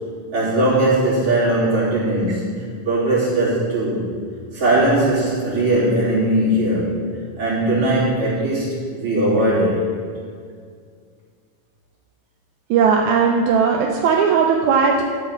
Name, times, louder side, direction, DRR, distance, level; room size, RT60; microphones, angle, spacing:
voice 1, 0.3-4.1 4.5-7.0 7.4-10.0, right 1 dB, 45° right, -9 dB, 4.0 m, -19 dB
voice 2, 12.7-15.0, right 6 dB, 75° right, 1 dB, 2.0 m, -17 dB
12.5 x 4.5 x 7.0 m, 2.1 s
omnidirectional pair, 3.7 m